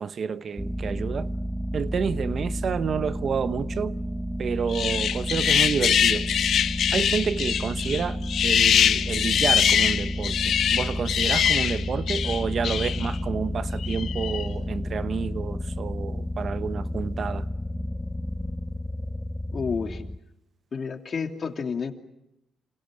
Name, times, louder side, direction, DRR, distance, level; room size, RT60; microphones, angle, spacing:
voice 1, 0.0-1.3 1.7-3.9 4.4-6.2 6.9-8.2 8.4-10.3 10.7-17.4, right 6 dB, 50° right, 1.0 m, -29 dB
sound 1, 0.6-20.2, left 1 dB, 5° left, 0.9 m, -31 dB
sound 2, 4.7-13.2 13.8-14.5, left 9 dB, 65° left, 1.2 m, -23 dB
voice 2, 19.5-20.0 20.7-21.9, left 5 dB, 45° left, 2.8 m, -30 dB
28.5 x 28.0 x 6.5 m
cardioid pair, 90°, 0 cm